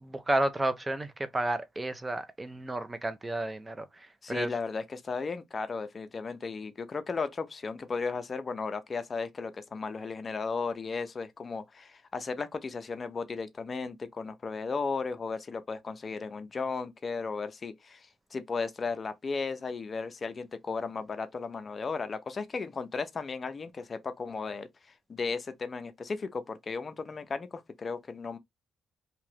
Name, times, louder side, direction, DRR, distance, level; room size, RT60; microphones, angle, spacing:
voice 1, 0.0-4.5, right 1 dB, 20° right, 0.5 m, -32 dB
voice 2, 4.2-24.7 25.1-28.4, left 4 dB, 35° left, 0.4 m, -35 dB
2.7 x 2.4 x 3.2 m
cardioid pair, 90°, 0 cm